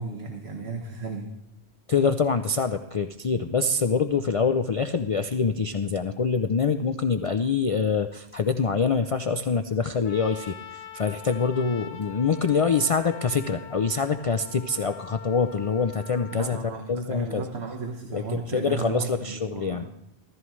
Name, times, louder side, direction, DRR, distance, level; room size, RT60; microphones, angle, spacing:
voice 1, 0.0-1.3 16.3-19.9, right 4 dB, 70° right, 2 dB, 1.5 m, -34 dB
voice 2, 1.9-17.4 18.1-19.9, left 5 dB, 50° left, 8 dB, 0.4 m, -25 dB
Trumpet, 10.0-16.6, left 7 dB, 65° left, 1.0 m, -43 dB
15.0 x 14.5 x 3.2 m, 0.85 s
omnidirectional pair, 1.1 m